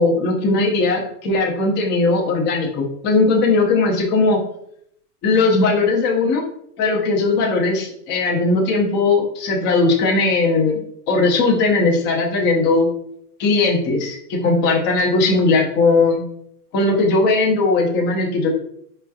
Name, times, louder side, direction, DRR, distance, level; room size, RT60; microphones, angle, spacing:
voice 1, 0.0-4.4 5.2-6.5 6.8-12.9 13.4-16.2 16.7-18.5, left 3 dB, 20° left, 0 dB, 0.8 m, -18 dB
5.1 x 3.2 x 2.3 m, 0.71 s
hypercardioid pair, 140°, 48 cm